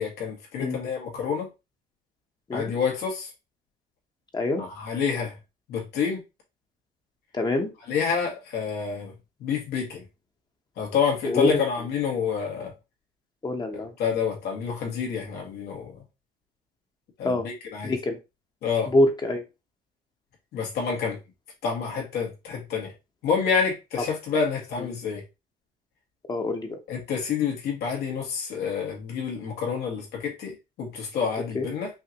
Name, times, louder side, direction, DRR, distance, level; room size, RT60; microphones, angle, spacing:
voice 1, 0.0-1.5 2.5-3.3 4.6-5.3 5.7-6.2 7.9-9.1 9.4-10.0 10.8-12.7 13.7-16.0 17.2-17.9 18.6-18.9 20.5-21.2 21.6-22.9 23.2-25.2 26.9-31.9, left 6 dB, 75° left, 2.0 m, -28 dB
voice 2, 4.3-4.6 7.3-7.7 11.2-11.6 13.4-13.9 17.2-17.5 17.8-18.2 18.9-19.4 24.8-24.9 26.3-26.8 31.5-31.7, left 1 dB, 25° left, 1.0 m, -25 dB
5.5 x 2.6 x 3.0 m
cardioid pair, 110°, 17 cm